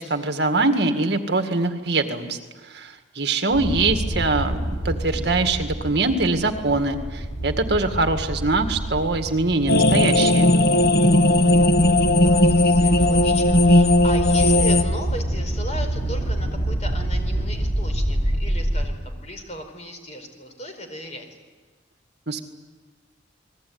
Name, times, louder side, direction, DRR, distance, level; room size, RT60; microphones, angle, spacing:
voice 1, 0.0-4.6 4.8-10.5 22.3-22.4, right 3 dB, 60° right, 6 dB, 2.0 m, -23 dB
sound 1, 3.5-18.9, right 1 dB, 15° left, 5.9 m, -27 dB
sound 2, 9.7-14.8, left 1 dB, 55° left, 1.4 m, -17 dB
voice 2, 10.9-21.3, left 1 dB, 35° left, 5 dB, 4.5 m, -37 dB
29.5 x 20.5 x 9.5 m, 1.3 s
head